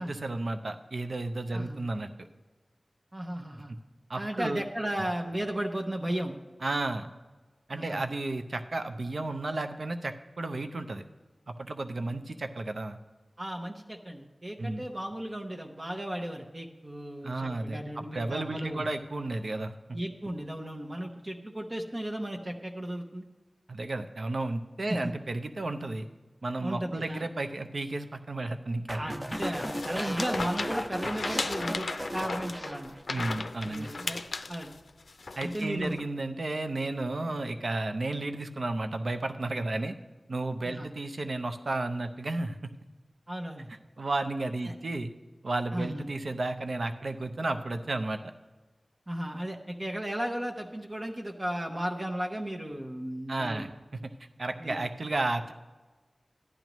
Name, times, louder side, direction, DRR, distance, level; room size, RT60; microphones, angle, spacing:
voice 1, 0.0-2.1 4.1-4.6 6.6-7.1 7.7-11.0 11.5-13.0 14.6-14.9 17.2-19.7 23.7-26.1 26.4-29.0 33.1-33.9 35.4-39.9 40.3-42.7 44.0-45.1 45.4-48.2 53.3-53.7 54.4-55.5, right 2 dB, 70° right, 7 dB, 0.6 m, -33 dB
voice 2, 3.1-3.7 4.1-6.4 7.7-8.0 13.4-18.9 19.9-23.2 24.9-25.1 26.6-27.3 29.0-31.9 32.1-34.2 34.5-34.7 35.4-36.0 40.6-40.9 43.3-43.7 44.6-44.7 45.7-46.0 49.1-53.7 54.6-54.8, right 1 dB, 35° right, 2 dB, 0.9 m, -35 dB
sound 1, 28.9-33.3 33.6-34.0, equal, 10° right, 0.6 m, -36 dB
sound 2, 29.3-36.0, left 3 dB, 85° left, 0.4 m, -36 dB
14.0 x 10.5 x 3.1 m, 1.2 s
wide cardioid pair, 60°, 0 cm